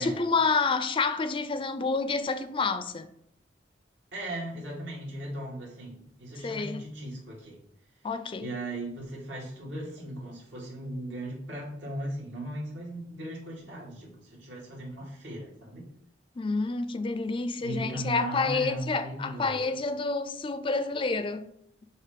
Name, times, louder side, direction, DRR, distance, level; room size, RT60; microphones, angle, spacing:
voice 1, 0.0-3.1 6.4-6.8 8.0-8.5 16.4-21.5, left 4 dB, 30° left, 0.4 m, -28 dB
voice 2, 4.1-7.6 8.4-15.8 17.6-19.6, right 1 dB, 80° right, 2.4 m, -37 dB
6.8 x 3.0 x 5.1 m
head